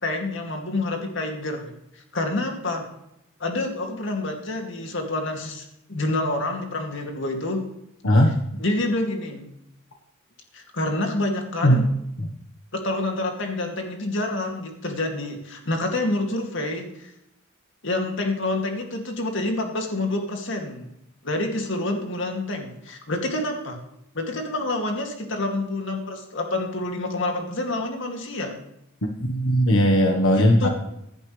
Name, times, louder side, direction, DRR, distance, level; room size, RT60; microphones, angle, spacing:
voice 1, 0.0-2.9 3.4-7.6 8.5-9.5 10.5-11.9 12.7-17.1 17.8-20.9 21.2-23.8 24.1-28.6 30.3-30.7, left 2 dB, 65° left, 3 dB, 2.5 m, -28 dB
voice 2, 29.2-30.7, equal, 90° left, 2 dB, 1.4 m, -18 dB
16.0 x 11.0 x 3.3 m, 0.83 s
head